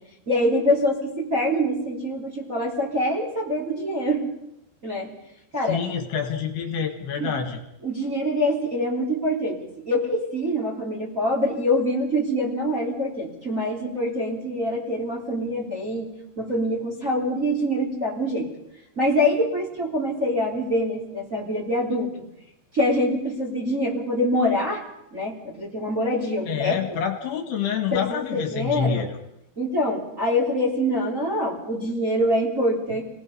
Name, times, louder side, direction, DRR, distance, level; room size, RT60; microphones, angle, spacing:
voice 1, 0.3-4.2 4.8-5.1 5.5-5.8 7.1-7.3 7.8-16.1 16.4-18.5 19.0-22.1 22.7-24.8 25.1-27.0 27.9-29.1 29.6-33.0, equal, 20° right, -2 dB, 3.2 m, -25 dB
voice 2, 5.7-7.6 26.5-29.1, left 7 dB, 65° left, 5 dB, 3.4 m, -27 dB
29.5 x 19.0 x 5.6 m, 0.82 s
omnidirectional pair, 5.3 m